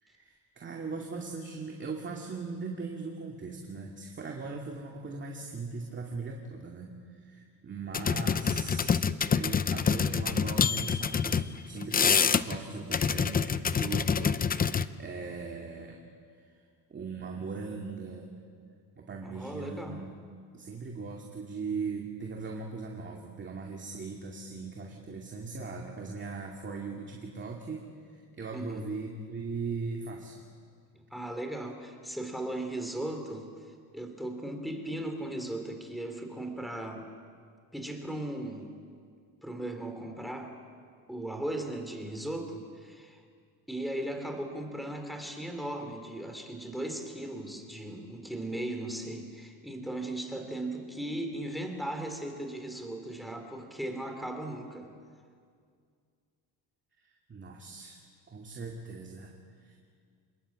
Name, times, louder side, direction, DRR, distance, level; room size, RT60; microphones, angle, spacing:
voice 1, 0.0-16.0 16.4-16.5 16.9-18.3 19.0-20.1 20.5-30.4 57.3-58.0 58.3-59.8, right 4 dB, 30° right, 1 dB, 2.4 m, -39 dB
sound 1, 7.9-11.5 11.8-12.6 12.9-14.9, left 6 dB, 25° left, 0.6 m, -26 dB
voice 2, 19.2-20.0 28.5-28.8 31.1-37.1 37.7-38.7 39.4-40.5 41.1-43.2 43.7-54.9, right 1 dB, ahead, 5 dB, 3.5 m, -37 dB
27.5 x 21.0 x 8.8 m, 2.1 s
cardioid pair, 135°, 38 cm